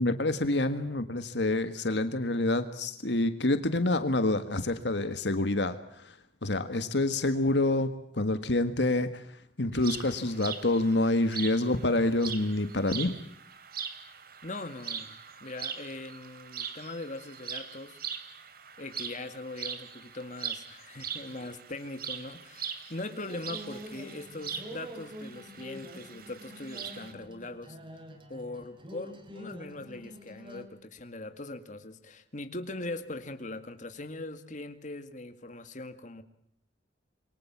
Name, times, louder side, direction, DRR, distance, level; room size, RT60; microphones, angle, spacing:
voice 1, 0.0-13.2, left 2 dB, 70° left, 10 dB, 1.7 m, -27 dB
sound 1, 9.7-27.1, right 7 dB, 55° right, 2.8 m, -41 dB
voice 2, 14.4-18.0 18.8-27.8 28.3-36.2, left 2 dB, 45° left, 8 dB, 2.1 m, -41 dB
sound 2, 23.2-30.7, equal, 30° right, 3.8 m, -46 dB
27.5 x 23.5 x 7.4 m, 0.72 s
head